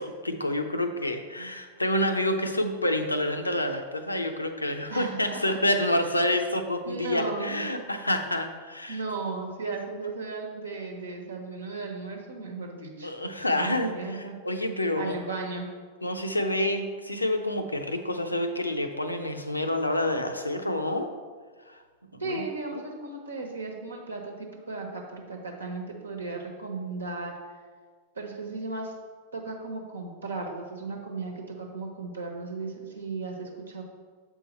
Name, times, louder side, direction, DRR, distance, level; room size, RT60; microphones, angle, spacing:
voice 1, 0.0-9.0 13.0-15.1 16.0-21.1 21.7-21.8 22.1-22.4 22.7-22.8, left 1 dB, 85° left, 6 dB, 0.6 m, -28 dB
voice 2, 4.9-5.4 6.8-7.6 8.9-13.1 13.5-14.3 14.9-15.6 22.2-27.3 28.1-28.9 29.3-33.8, right 3 dB, 75° right, 1 dB, 1.2 m, -35 dB
7.4 x 4.5 x 4.3 m, 1.5 s
figure-of-eight pair, 90°, 0 cm